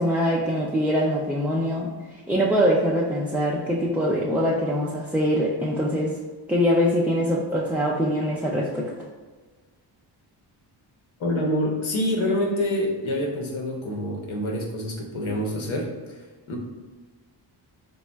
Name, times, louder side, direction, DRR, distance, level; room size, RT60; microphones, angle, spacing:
voice 1, 0.0-6.1 6.5-8.9, equal, 5° right, -5 dB, 0.3 m, -23 dB
voice 2, 11.2-16.6, left 1 dB, 70° left, 0 dB, 1.0 m, -27 dB
4.1 x 2.1 x 3.3 m, 1.3 s
cardioid pair, 70°, 49 cm